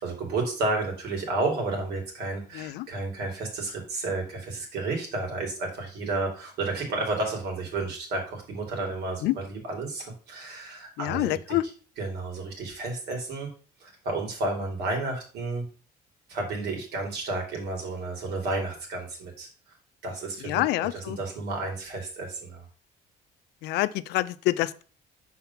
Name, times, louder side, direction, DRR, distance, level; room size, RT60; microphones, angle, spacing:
voice 1, 0.0-11.6 12.0-13.5 13.8-15.7 16.3-19.5 20.0-22.6, right 2 dB, 75° right, 2.9 m, -31 dB
voice 2, 2.5-2.9 9.2-9.4 11.0-11.6 20.4-21.2 23.6-24.8, left 16 dB, 85° left, 0.5 m, -27 dB
5.8 x 4.4 x 5.7 m
cardioid pair, 110°, 17 cm